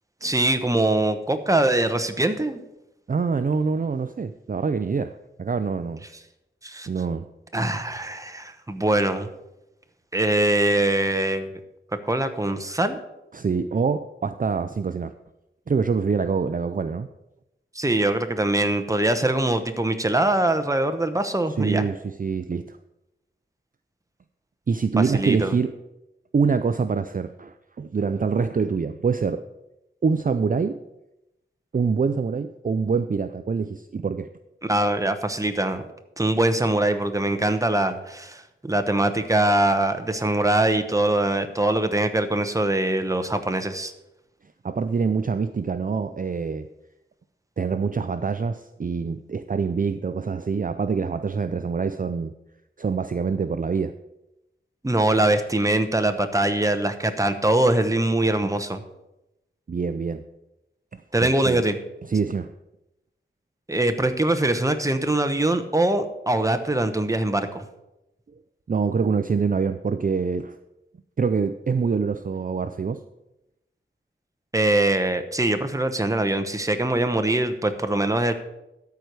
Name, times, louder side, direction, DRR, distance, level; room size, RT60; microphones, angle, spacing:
voice 1, 0.2-2.6 6.6-6.9 7.5-9.3 10.1-11.5 12.1-13.0 17.7-21.9 25.1-25.6 34.6-35.8 36.2-43.9 54.8-58.8 61.1-61.8 63.7-67.6 74.5-78.3, right 1 dB, 15° right, 8 dB, 0.9 m, -23 dB
voice 2, 3.1-5.1 5.4-6.0 6.9-7.3 13.3-15.1 15.7-17.1 21.6-22.8 24.7-25.7 26.3-29.4 30.0-30.8 31.7-34.3 44.6-46.7 47.6-52.3 52.8-53.9 59.7-60.2 61.2-61.6 62.1-62.5 68.7-70.6 71.2-73.0, right 5 dB, 40° right, 10 dB, 0.4 m, -25 dB
13.0 x 4.6 x 6.7 m, 0.91 s
wide cardioid pair, 80°, 21 cm